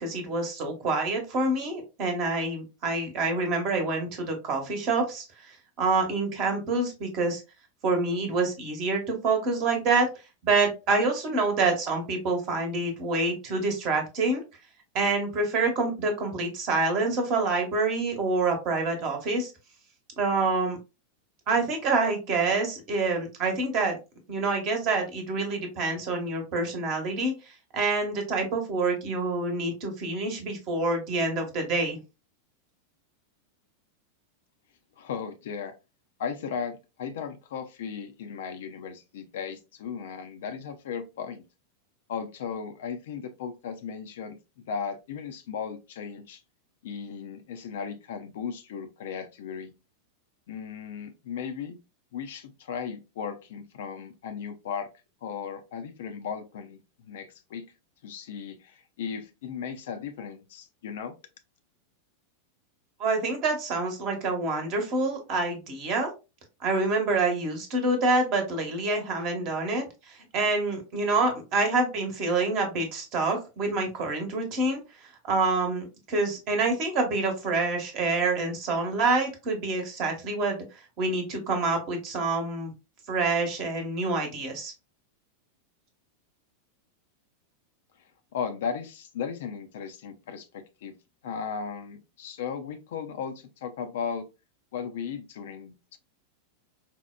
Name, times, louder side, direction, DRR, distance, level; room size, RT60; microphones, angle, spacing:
voice 1, 0.0-7.4 7.8-10.1 10.4-14.4 14.9-19.5 20.2-20.8 21.5-24.0 24.3-27.3 27.7-32.0 63.0-66.1 66.6-74.8 75.2-80.6 81.0-82.7 83.1-84.7, right 3 dB, 40° right, 0.9 m, -27 dB
voice 2, 35.0-35.7 36.2-41.4 42.1-44.4 44.7-46.4 46.8-49.7 50.5-51.8 52.1-54.9 55.2-57.6 58.0-61.1 88.3-91.0 91.2-94.3 94.7-96.0, left 6 dB, 55° left, 0.4 m, -36 dB
4.3 x 2.1 x 2.2 m
figure-of-eight pair, 90°, 0 cm